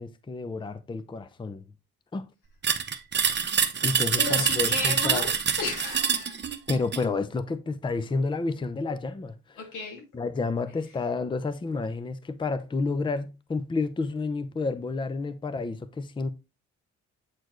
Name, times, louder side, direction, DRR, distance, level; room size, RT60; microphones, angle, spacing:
voice 1, 0.0-1.6 2.1-2.2 3.8-5.3 6.7-9.6 10.1-16.3, left 3 dB, 15° left, 0.5 m, -30 dB
sound 1, 2.6-7.1, right 7 dB, 35° right, 0.8 m, -26 dB
voice 2, 4.1-6.4 9.6-10.0, left 3 dB, 85° left, 2.4 m, -33 dB
8.0 x 4.3 x 3.1 m
cardioid pair, 90°, 30 cm